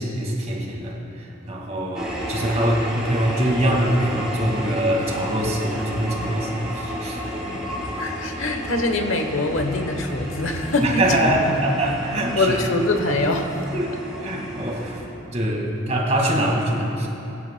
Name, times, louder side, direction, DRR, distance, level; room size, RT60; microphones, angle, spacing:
voice 1, 0.0-7.9 10.8-12.6 13.7-15.0 15.3-17.1, right 1 dB, 35° right, -1 dB, 1.9 m, -24 dB
sound 1, 1.9-15.0, equal, 5° right, 3.1 m, -32 dB
voice 2, 8.0-11.1 12.3-13.8 14.5-14.6, left 2 dB, 80° left, 5 dB, 1.0 m, -23 dB
23.0 x 10.5 x 2.2 m, 2.9 s
head